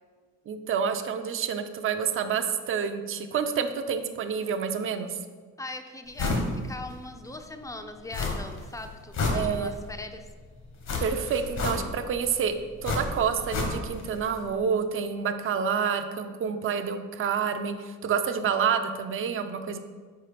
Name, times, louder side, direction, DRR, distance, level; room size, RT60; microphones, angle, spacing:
voice 1, 0.5-5.2 9.3-9.7 11.0-12.5 12.8-19.8, right 7 dB, 45° right, 8 dB, 0.5 m, -28 dB
voice 2, 5.6-10.3, left 2 dB, 10° left, 7 dB, 0.5 m, -40 dB
sound 1, 6.2-6.5 6.9-7.0 8.1-8.6 9.0-9.9 10.8-12.1 12.8-14.1 14.3-14.4, left 3 dB, 65° left, 1.4 m, -29 dB
4.7 x 4.5 x 5.0 m, 1.5 s
cardioid pair, 90°, 30 cm